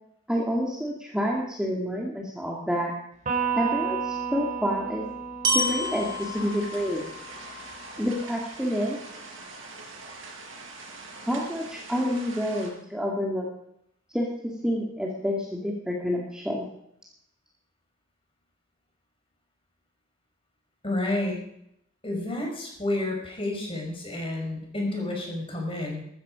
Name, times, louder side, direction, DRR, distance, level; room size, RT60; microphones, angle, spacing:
voice 1, 0.3-2.9 3.6-5.0 5.5-7.0 8.0-9.0 11.3-13.5 14.1-14.3 14.6-16.6, equal, 5° right, -2 dB, 2.0 m, -28 dB
Electric guitar, 3.3-6.8, right 7 dB, 35° right, 4.0 m, -31 dB
Glockenspiel, 5.4-9.4, equal, 20° right, 3.0 m, -32 dB
sound 1, 5.6-12.7, right 3 dB, 65° right, 5.3 m, -43 dB
voice 2, 20.8-21.4 22.0-26.0, left 2 dB, 25° left, 0 dB, 5.4 m, -30 dB
14.5 x 14.0 x 5.0 m, 0.75 s
head